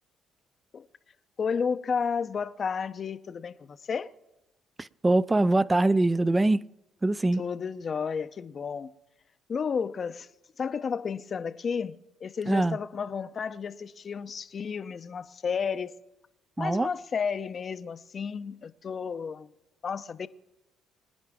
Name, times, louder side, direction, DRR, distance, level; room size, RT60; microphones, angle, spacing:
voice 1, 1.4-4.1 7.4-8.9 9.5-10.3 10.6-15.9 16.6-19.5 19.8-20.3, left 6 dB, 50° left, 0.7 m, -32 dB
voice 2, 4.8-6.6 7.0-7.4 12.5-12.8 16.6-16.9, right 2 dB, 20° right, 0.5 m, -23 dB
25.0 x 10.5 x 3.6 m
hypercardioid pair, 60°, 0 cm